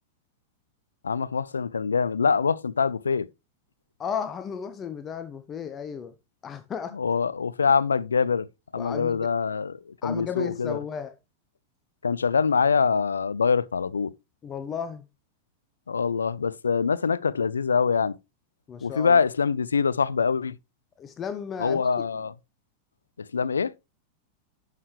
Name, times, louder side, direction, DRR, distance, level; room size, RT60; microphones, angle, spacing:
voice 1, 1.0-3.3 7.0-8.5 8.7-10.8 12.0-14.1 15.9-18.2 18.8-20.6 21.6-22.3 23.2-23.7, left 5 dB, 75° left, 0.4 m, -24 dB
voice 2, 4.0-6.1 6.4-7.0 8.7-9.3 10.0-11.2 14.4-15.1 18.7-19.2 21.0-21.8, left 7 dB, 25° left, 0.7 m, -34 dB
11.0 x 6.6 x 3.2 m
figure-of-eight pair, 90°, 0 cm